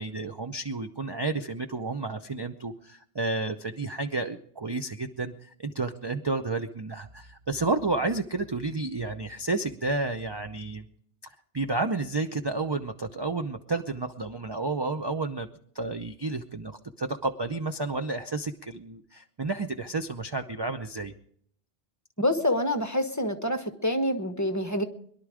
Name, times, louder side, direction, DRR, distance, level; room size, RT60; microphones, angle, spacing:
voice 1, 0.0-10.8 11.2-15.5 15.7-21.1, right 3 dB, 30° right, 7 dB, 0.6 m, -31 dB
voice 2, 22.2-24.8, left 1 dB, 15° left, 7 dB, 1.2 m, -27 dB
22.0 x 11.5 x 4.9 m, 0.65 s
omnidirectional pair, 1.0 m